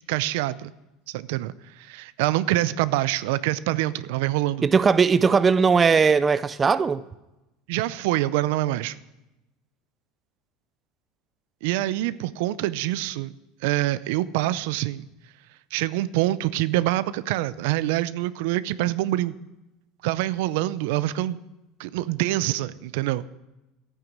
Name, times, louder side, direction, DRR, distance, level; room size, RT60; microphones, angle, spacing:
voice 1, 0.1-0.7 1.1-4.7 7.7-9.0 11.6-13.3 13.6-15.0 15.7-19.3 20.0-21.4 21.8-23.2, right 15 dB, 75° right, 0.5 m, -25 dB
voice 2, 4.6-7.0, right 5 dB, 20° right, 0.4 m, -19 dB
13.0 x 9.2 x 6.1 m
supercardioid pair, 135°, 0 cm